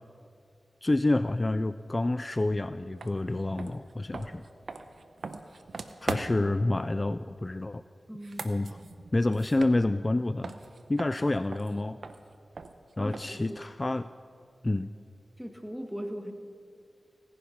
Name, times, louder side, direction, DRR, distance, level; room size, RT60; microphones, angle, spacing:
voice 1, 0.8-4.5 6.0-7.8 8.4-8.8 9.1-10.5 10.9-12.0 13.0-14.1 14.6-14.9, left 2 dB, 35° left, 13 dB, 0.3 m, -28 dB
sound 1, 3.0-3.1 3.5-6.6 8.1-10.2 10.4-13.5, right 4 dB, 75° right, 0.8 m, -40 dB
voice 2, 6.2-6.9 8.1-8.5 13.0-13.6 15.4-16.3, equal, ahead, 5 dB, 1.7 m, -40 dB
17.0 x 10.0 x 5.9 m, 2.4 s
cardioid pair, 45°, 0 cm